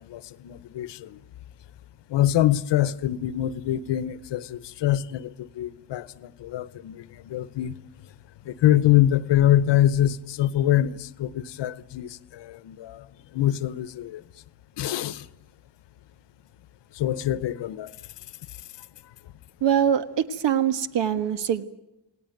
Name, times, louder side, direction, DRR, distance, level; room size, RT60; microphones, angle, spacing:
voice 1, 0.1-1.0 2.1-5.3 5.6-6.0 6.4-7.0 7.3-7.7 8.5-12.1 12.6-13.0 13.3-14.2 14.8-15.2 17.0-17.9, left 12 dB, 70° left, 1.0 m, -24 dB
voice 2, 19.6-21.6, right 9 dB, 70° right, 1.6 m, -23 dB
28.5 x 18.5 x 9.2 m
cardioid pair, 175°, 44 cm